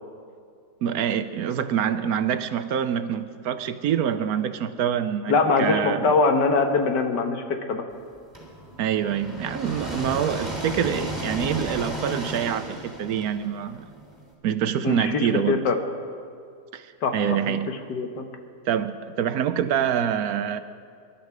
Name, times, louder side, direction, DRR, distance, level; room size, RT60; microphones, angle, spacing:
voice 1, 0.8-6.1 8.8-13.8 14.4-15.7 16.7-17.7 18.7-20.6, right 9 dB, 70° right, 11 dB, 1.0 m, -26 dB
voice 2, 5.3-7.8 14.8-15.8 17.0-17.2 17.5-18.2, left 4 dB, 85° left, 5 dB, 1.9 m, -23 dB
sound 1, 8.3-14.2, equal, 10° right, 2.8 m, -33 dB
23.5 x 11.5 x 4.9 m, 2.3 s
omnidirectional pair, 1.8 m